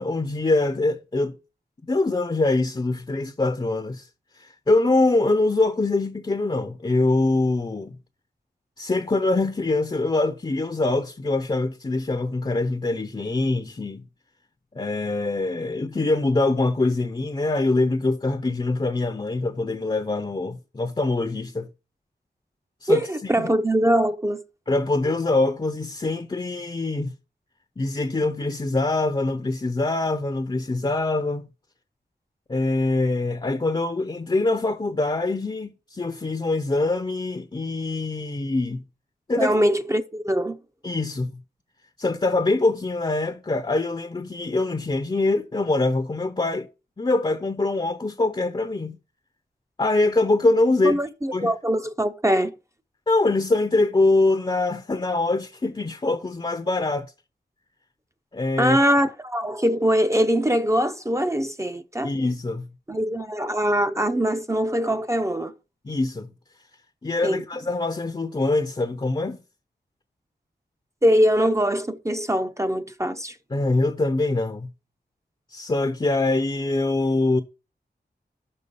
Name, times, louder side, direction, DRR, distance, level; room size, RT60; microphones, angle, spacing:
voice 1, 0.0-1.3 1.9-4.1 4.4-8.0 8.8-14.0 14.7-21.7 22.8-23.5 24.7-27.1 27.8-31.4 32.5-38.8 39.3-39.6 40.8-41.4 42.0-46.7 47.0-49.0 49.8-51.0 51.3-51.5 53.1-57.1 58.3-58.8 62.0-62.7 65.8-66.3 67.0-69.4 73.5-74.7 75.5-77.4, left 2 dB, 25° left, 0.7 m, -24 dB
voice 2, 22.9-24.4 39.4-40.6 50.8-52.5 58.6-62.1 62.9-65.5 67.2-67.4 71.0-73.4, equal, 15° right, 0.6 m, -22 dB
6.0 x 5.4 x 6.8 m
wide cardioid pair, 65°, 18 cm